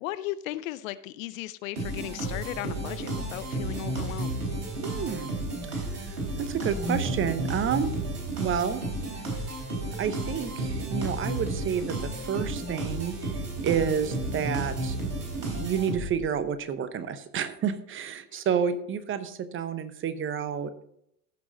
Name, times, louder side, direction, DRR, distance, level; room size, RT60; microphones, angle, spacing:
voice 1, 0.0-4.4 18.3-18.4, left 15 dB, 55° left, 15 dB, 0.6 m, -36 dB
sound 1, 1.8-16.3, right 2 dB, 75° right, 4.1 m, -32 dB
voice 2, 4.8-5.3 5.7-7.9 8.4-8.8 10.0-15.0 15.4-20.7, right 7 dB, 25° right, 12 dB, 0.8 m, -30 dB
15.0 x 6.2 x 3.9 m, 0.73 s
figure-of-eight pair, 85°, 47 cm